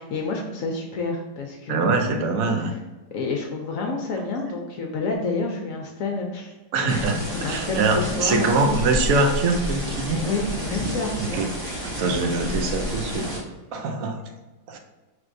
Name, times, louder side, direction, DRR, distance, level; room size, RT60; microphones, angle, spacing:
voice 1, 0.0-2.8 3.1-6.5 6.8-8.5 10.2-11.4, left 3 dB, 70° left, 1 dB, 0.8 m, -29 dB
voice 2, 1.7-2.7 6.7-10.2 11.2-11.5 11.8-13.3 13.7-14.2 14.7-14.8, right 3 dB, 70° right, 4 dB, 0.9 m, -23 dB
sound 1, 6.9-13.4, equal, 30° right, 0.4 m, -30 dB
4.4 x 3.1 x 2.5 m, 1.2 s
omnidirectional pair, 1.8 m